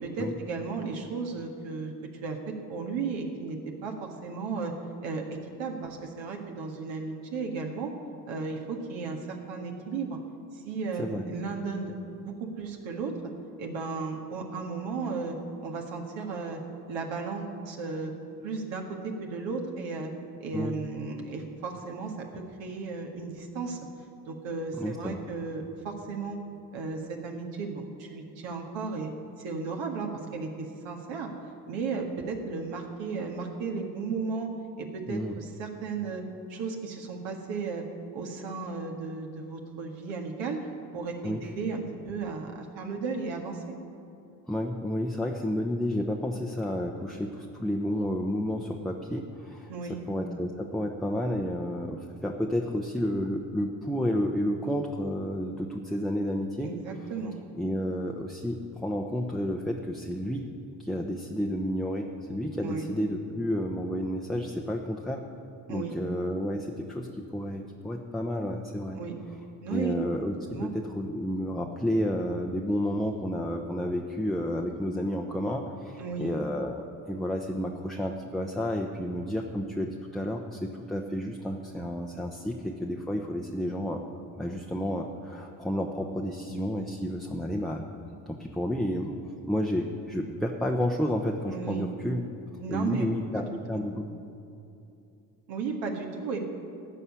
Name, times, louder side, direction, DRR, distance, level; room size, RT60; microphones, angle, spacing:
voice 1, 0.0-1.9 2.2-4.7 5.0-5.2 5.6-7.9 8.3-10.2 10.5-13.1 13.6-15.4 15.6-16.6 16.9-18.1 18.4-20.1 20.4-23.9 24.2-26.4 26.7-29.1 29.4-31.3 31.7-34.5 34.8-36.2 36.5-37.8 38.1-40.7 40.9-43.6 49.7-50.0 56.6-57.4 62.6-62.9 65.7-65.9 69.0-69.2 69.6-69.9 70.5-70.7 76.0-76.3 91.5-91.9 92.6-93.1 93.3-93.4 93.7-93.8 95.5-96.5, right 4 dB, 60° right, 2 dB, 1.8 m, -34 dB
voice 2, 24.8-25.2 35.1-35.4 41.2-41.4 44.5-56.7 57.6-60.5 60.8-65.2 65.7-69.0 69.7-70.3 70.6-84.0 84.4-87.8 88.3-89.1 89.5-92.2 92.7-94.1, equal, ahead, 0 dB, 0.9 m, -31 dB
14.5 x 5.5 x 9.6 m, 2.7 s
hypercardioid pair, 55°, 50 cm